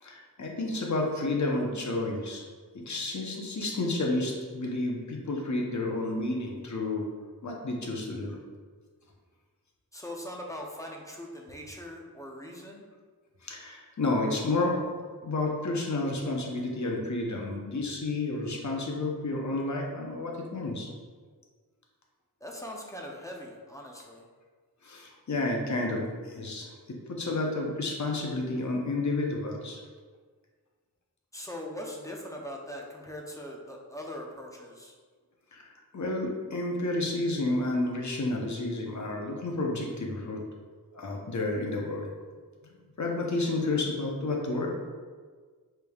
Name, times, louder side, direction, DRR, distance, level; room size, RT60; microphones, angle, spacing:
voice 1, 0.0-2.4 2.7-7.1 7.4-8.4 13.4-14.8 15.2-20.9 24.8-29.8 35.5-40.4 40.9-42.1 42.6-44.7, left 2 dB, 55° left, 0 dB, 0.8 m, -31 dB
voice 2, 9.9-12.9 22.4-24.3 31.3-34.9, left 1 dB, 10° left, -1 dB, 0.5 m, -41 dB
5.0 x 3.3 x 2.3 m, 1.5 s
wide cardioid pair, 85°, 35 cm